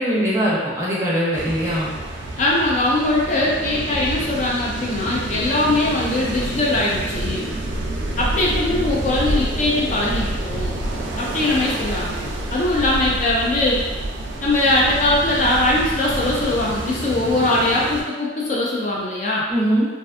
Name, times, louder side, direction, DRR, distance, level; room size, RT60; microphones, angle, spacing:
voice 1, 0.0-1.9 19.5-19.9, equal, 15° right, -7 dB, 0.5 m, -21 dB
sound 1, 1.3-18.0, right 1 dB, 65° right, 0.4 m, -28 dB
voice 2, 2.4-7.5 8.2-10.8 11.2-13.8 14.4-19.4, left 2 dB, 40° left, -4 dB, 0.3 m, -21 dB
2.5 x 2.4 x 2.4 m, 1.2 s
head